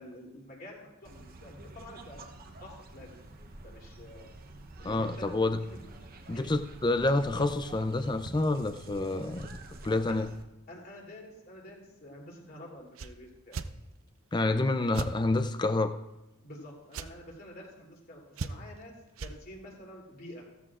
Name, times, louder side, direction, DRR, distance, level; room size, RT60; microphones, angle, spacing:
voice 1, 0.0-2.2 2.6-3.3 3.6-4.3 4.8-5.3 5.6-5.8 6.3-6.6 10.1-10.2 10.7-13.6 16.4-20.4, left 1 dB, 45° left, -1 dB, 3.1 m, -48 dB
sound 1, 1.0-10.4, right 2 dB, 40° right, 0.9 m, -48 dB
voice 2, 4.8-5.6 6.3-9.5 9.8-10.3 14.3-15.9, left 2 dB, 20° left, 9 dB, 0.5 m, -28 dB
sound 2, 12.9-13.1 13.5-13.7 14.9-15.1 16.9-17.1 18.4-18.8 19.2-19.4, right 4 dB, 65° right, 0.6 m, -36 dB
16.0 x 13.5 x 2.5 m, 0.95 s
head